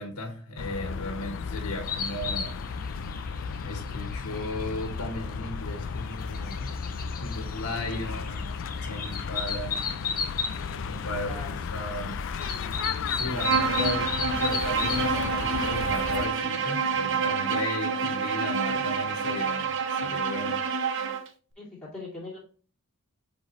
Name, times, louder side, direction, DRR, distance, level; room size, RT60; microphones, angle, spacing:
voice 1, 0.0-2.5 3.6-6.7 7.2-8.5 8.8-9.9 10.9-12.2 13.1-20.6, left 1 dB, 75° left, 3 dB, 1.2 m, -35 dB
sound 1, 0.6-16.3, left 5 dB, 60° left, 0.4 m, -34 dB
sound 2, 1.8-16.9, left 5 dB, 40° left, 1.0 m, -36 dB
voice 2, 11.2-11.6 21.6-22.4, left 2 dB, 5° left, -8 dB, 2.6 m, -40 dB
Bowed string instrument, 13.4-21.3, right 5 dB, 60° right, 0.8 m, -28 dB
7.7 x 4.1 x 3.1 m, 0.41 s
head